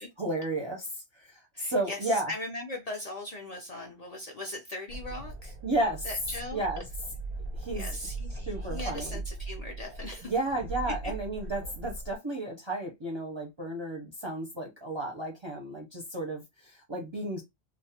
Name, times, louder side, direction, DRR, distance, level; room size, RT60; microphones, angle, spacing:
voice 1, 0.2-2.3 5.6-6.1 6.5-6.8 7.6-7.9 8.5-9.2 10.2-17.4, right 2 dB, 40° right, 0.4 m, -33 dB
voice 2, 1.5-5.6 6.0-6.6 7.7-10.3 11.0-11.1, left 1 dB, 55° left, 0.5 m, -39 dB
sound 1, 4.9-12.2, right 2 dB, 85° right, 1.0 m, -39 dB
2.3 x 2.0 x 2.7 m
omnidirectional pair, 1.1 m